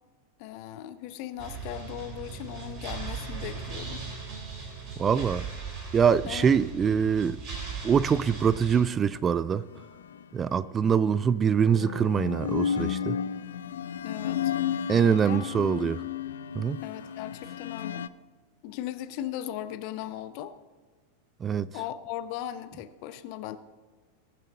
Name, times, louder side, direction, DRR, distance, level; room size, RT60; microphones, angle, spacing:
voice 1, 0.4-4.0 6.3-6.8 14.0-14.5 15.2-15.4 16.8-18.1 18.6-20.5 21.7-23.6, left 12 dB, 45° left, 0.8 m, -38 dB
sound 1, 1.4-8.8, right 5 dB, 40° right, 3.6 m, -38 dB
voice 2, 5.0-5.5 5.9-7.4 7.8-9.6 10.3-13.2 14.9-16.0 16.5-16.8 21.4-21.7, right 7 dB, 20° right, 0.3 m, -24 dB
sound 2, 9.7-10.7 11.5-18.1, left 8 dB, 65° left, 0.4 m, -33 dB
20.0 x 7.4 x 4.0 m
figure-of-eight pair, 90°, 0 cm